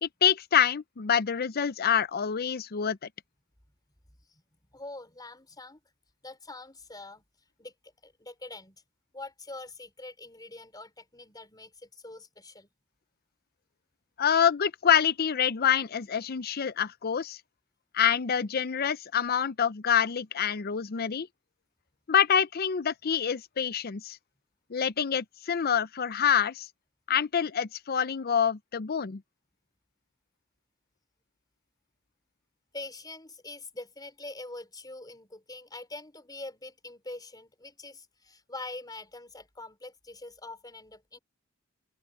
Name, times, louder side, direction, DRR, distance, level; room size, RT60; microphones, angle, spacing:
voice 1, 0.0-3.1 14.2-17.4 17.9-21.3 22.1-24.2 24.7-26.7 27.1-29.2, left 8 dB, 45° left, 0.6 m, -26 dB
voice 2, 4.7-5.8 6.2-7.2 7.6-8.8 9.1-12.7 32.7-41.2, left 2 dB, 20° left, 5.0 m, -44 dB
head